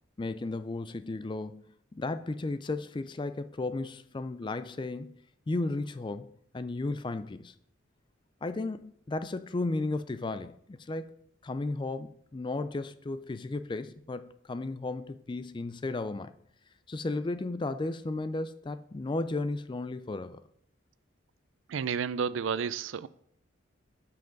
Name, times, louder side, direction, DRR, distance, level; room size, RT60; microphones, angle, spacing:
voice 1, 0.2-1.6 1.9-5.1 5.5-7.5 8.4-11.2 11.4-16.3 16.9-20.4, left 2 dB, 25° left, 0.3 m, -34 dB
voice 2, 21.7-23.1, right 6 dB, 75° right, 0.4 m, -31 dB
10.0 x 5.7 x 3.9 m
head